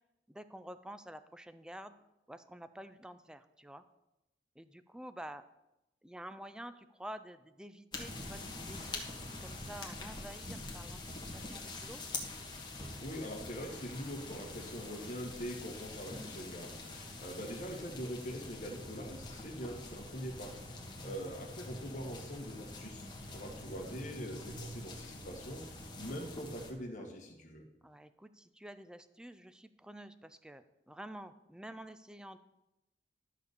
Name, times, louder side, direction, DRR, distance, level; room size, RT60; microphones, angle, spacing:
voice 1, 0.3-1.9 2.3-3.8 4.6-5.4 6.0-12.0 14.9-15.0 20.7-21.0 27.8-32.4, right 1 dB, 5° right, 12 dB, 0.3 m, -49 dB
sound 1, 7.9-26.7, left 2 dB, 25° left, 1.5 m, -45 dB
voice 2, 13.0-23.1 23.3-25.6 26.0-27.6, equal, 45° left, 1 dB, 1.8 m, -43 dB
12.0 x 4.2 x 6.8 m, 0.93 s
head